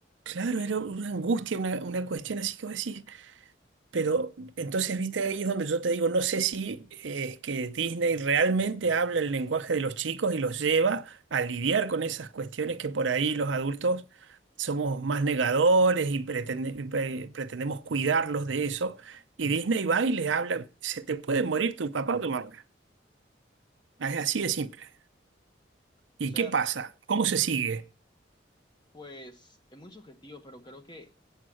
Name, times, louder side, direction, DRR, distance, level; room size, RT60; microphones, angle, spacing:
voice 1, 0.3-3.3 3.9-14.0 14.6-22.6 24.0-24.9 26.2-27.8, right 4 dB, 90° right, 0.6 m, -28 dB
voice 2, 26.2-26.6 27.4-27.5 28.9-31.2, left 1 dB, 25° left, 1.2 m, -48 dB
8.6 x 7.3 x 7.6 m
head